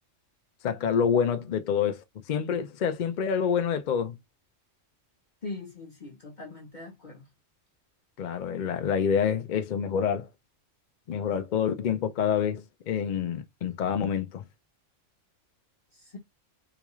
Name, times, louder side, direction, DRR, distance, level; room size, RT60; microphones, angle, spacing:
voice 1, 0.6-4.2 8.2-10.3 11.1-14.4, left 7 dB, 60° left, 0.5 m, -27 dB
voice 2, 5.4-7.3 15.9-16.2, left 3 dB, 40° left, 1.0 m, -41 dB
3.9 x 2.3 x 3.0 m
omnidirectional pair, 1.3 m